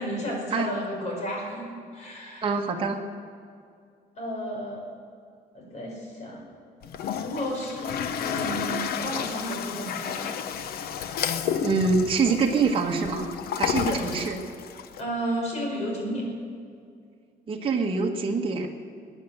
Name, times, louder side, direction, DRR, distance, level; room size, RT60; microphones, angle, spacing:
voice 1, 0.0-2.5 4.2-4.8 5.5-6.5 7.1-7.9 8.2-10.6 13.7-14.2 15.0-16.3, equal, 50° left, -1 dB, 5.0 m, -33 dB
voice 2, 2.4-3.0 11.6-13.2 13.6-14.4 17.5-18.7, right 4 dB, 35° right, 0 dB, 1.4 m, -25 dB
Toilet flush, 6.8-15.0, left 8 dB, 90° left, 0.8 m, -31 dB
21.5 x 10.0 x 6.7 m, 2.3 s
cardioid pair, 145°, 16 cm